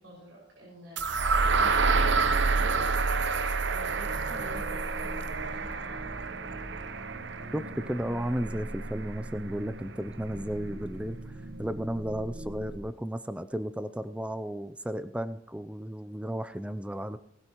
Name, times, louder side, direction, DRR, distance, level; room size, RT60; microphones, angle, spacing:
voice 1, 0.0-6.1 6.8-7.0, right 1 dB, 85° right, -4 dB, 5.7 m, -48 dB
sound 1, 1.0-8.9, right 4 dB, 65° right, 0.7 m, -28 dB
sound 2, 3.9-12.8, right 1 dB, 50° right, 1.2 m, -42 dB
voice 2, 7.5-17.2, equal, 5° right, 11 dB, 0.4 m, -34 dB
19.5 x 12.5 x 3.0 m, 0.75 s
head